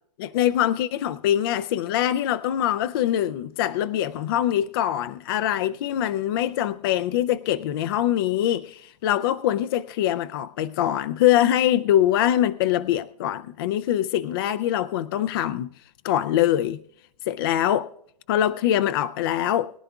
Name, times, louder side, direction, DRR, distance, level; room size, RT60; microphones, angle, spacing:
voice 1, 0.2-15.7 16.0-16.8 17.3-17.9 18.3-19.7, left 11 dB, 35° left, 0.4 m, -23 dB
22.5 x 11.0 x 2.3 m
hypercardioid pair, 145°, 21 cm